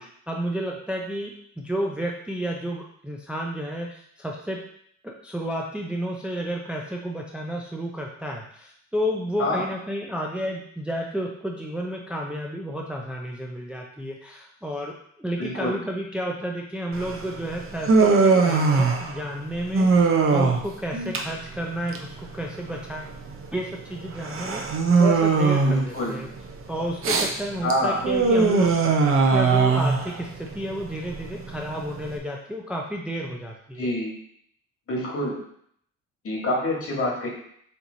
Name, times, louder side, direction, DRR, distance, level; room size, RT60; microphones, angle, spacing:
voice 1, 0.0-4.6 5.0-23.1 23.5-24.6 25.0-26.3 26.7-28.7 29.3-33.9, equal, 5° right, 0 dB, 0.5 m, -31 dB
voice 2, 15.4-15.8 25.6-26.2 27.6-28.0 33.8-34.1 34.9-35.4 36.2-37.3, left 1 dB, 50° left, -2 dB, 1.7 m, -26 dB
Human voice, 16.9-32.2, right 4 dB, 45° right, 0.7 m, -22 dB
4.5 x 2.9 x 3.9 m, 0.67 s
cardioid pair, 90°, 30 cm